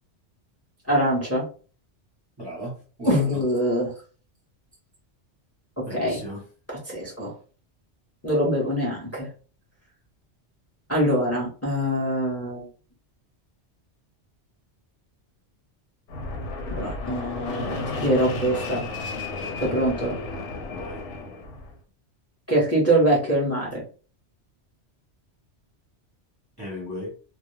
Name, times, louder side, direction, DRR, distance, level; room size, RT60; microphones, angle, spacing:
voice 1, 0.9-1.4 3.0-3.9 5.9-6.2 6.7-7.3 8.2-9.3 10.9-12.7 16.7-18.8 19.6-20.1 22.5-23.8, right 1 dB, 15° left, -4 dB, 0.7 m, -24 dB
voice 2, 2.4-3.4 5.9-6.4 20.7-21.0 26.6-27.1, equal, 25° right, -4 dB, 0.7 m, -36 dB
Fixed-wing aircraft airplane, 16.1-21.7, left 3 dB, 85° left, 0.9 m, -33 dB
2.3 x 2.1 x 3.0 m, 0.39 s
omnidirectional pair, 1.2 m